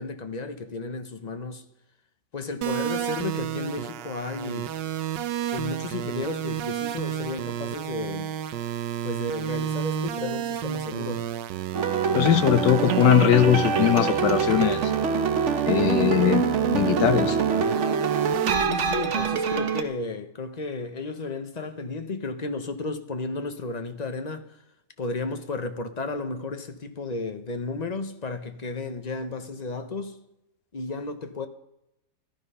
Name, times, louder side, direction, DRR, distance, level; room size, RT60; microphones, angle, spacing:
voice 1, 0.0-1.6 2.3-4.7 5.5-8.3 9.0-11.2 18.6-24.5 25.0-30.2 30.7-31.5, left 3 dB, 35° left, 0.7 m, -33 dB
sound 1, 2.6-18.5, right 10 dB, 85° right, 1.4 m, -32 dB
sound 2, 11.7-19.8, right 6 dB, 50° right, 1.1 m, -25 dB
voice 2, 12.1-14.9 15.7-16.4 16.7-17.4, left 10 dB, 75° left, 1.5 m, -20 dB
14.0 x 13.5 x 5.5 m
omnidirectional pair, 1.9 m